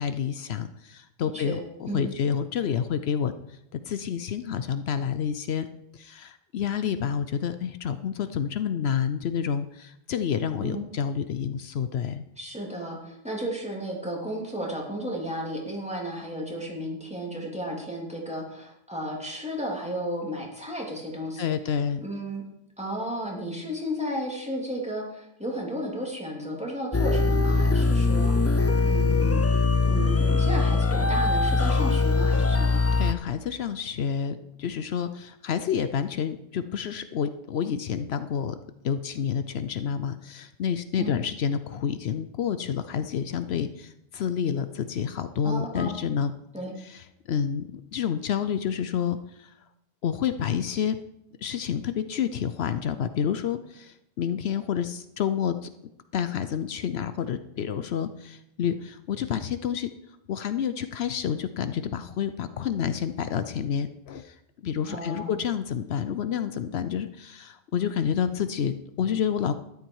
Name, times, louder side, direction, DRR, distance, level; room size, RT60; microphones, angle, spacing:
voice 1, 0.0-5.7 5.9-12.2 21.4-22.0 32.9-38.6 38.8-46.3 46.8-49.5 50.0-51.0 51.4-55.7 56.1-59.9 60.3-64.4 64.6-69.5, left 8 dB, 75° left, 11 dB, 0.9 m, -29 dB
voice 2, 1.2-1.6 1.9-2.1 10.6-10.8 12.4-21.5 22.0-22.4 22.8-29.4 29.9-32.8 41.0-41.2 45.4-45.9 46.5-46.7 64.9-65.3, equal, 5° right, -2 dB, 3.0 m, -33 dB
sound 1, 26.9-33.1, left 3 dB, 25° left, 0.3 m, -22 dB
13.0 x 11.0 x 4.7 m, 0.83 s
omnidirectional pair, 1.1 m